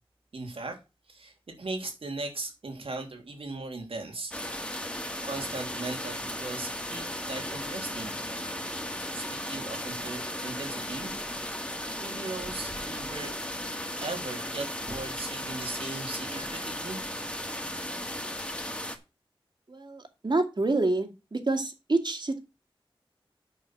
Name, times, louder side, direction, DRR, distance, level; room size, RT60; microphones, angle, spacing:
voice 1, 0.3-0.8 1.1-4.3 5.2-8.2 9.1-11.2 12.0-13.3 14.0-17.0, right 3 dB, 90° right, 3 dB, 3.1 m, -38 dB
sound 1, 4.3-19.0, left 1 dB, 10° left, 1.9 m, -36 dB
voice 2, 19.7-22.4, right 2 dB, 55° right, 6 dB, 2.2 m, -28 dB
9.0 x 6.3 x 6.1 m, 0.28 s
wide cardioid pair, 60°, 9 cm